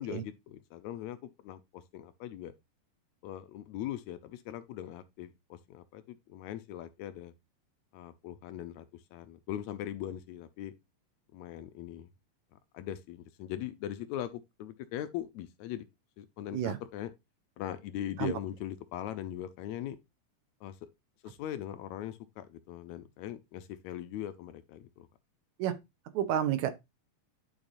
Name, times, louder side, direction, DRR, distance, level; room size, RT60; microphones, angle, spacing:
voice 1, 0.0-2.5 3.2-7.3 7.9-10.7 11.3-12.1 12.5-15.9 16.2-17.1 17.6-20.0 20.6-20.9 21.2-25.1, left 11 dB, 75° left, 1.9 m, -40 dB
voice 2, 26.1-26.7, right 10 dB, 80° right, 2.1 m, -30 dB
11.5 x 4.8 x 2.6 m
omnidirectional pair, 3.4 m